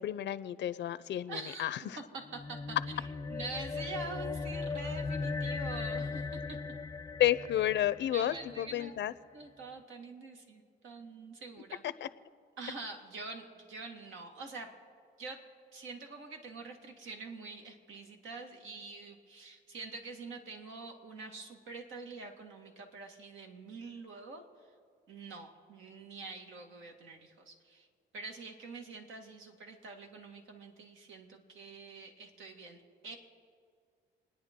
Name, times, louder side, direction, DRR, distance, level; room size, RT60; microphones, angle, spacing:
voice 1, 0.0-2.0 7.2-9.1 12.0-12.1, left 12 dB, 65° left, 15 dB, 0.6 m, -31 dB
voice 2, 1.3-6.6 8.1-9.0 9.3-11.8 12.6-14.8 15.2-24.4 25.1-27.9 28.1-33.2, right 3 dB, 80° right, 3 dB, 2.0 m, -46 dB
sound 1, 2.2-8.9, left 4 dB, 20° left, 0.5 m, -38 dB
29.0 x 9.9 x 3.7 m, 2.1 s
cardioid pair, 90°, 20 cm